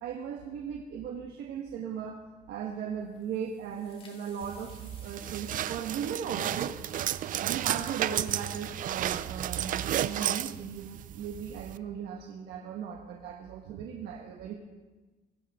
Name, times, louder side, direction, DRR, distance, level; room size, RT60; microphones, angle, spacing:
voice 1, 0.0-2.2 2.5-6.7 7.4-14.5, right 7 dB, 75° right, 1 dB, 1.4 m, -37 dB
sound 1, 3.0-8.5, left 3 dB, 35° left, 3.1 m, -60 dB
sound 2, 4.4-11.8, right 11 dB, 50° right, 0.5 m, -33 dB
23.5 x 11.0 x 3.7 m, 1.2 s
cardioid pair, 110°, 17 cm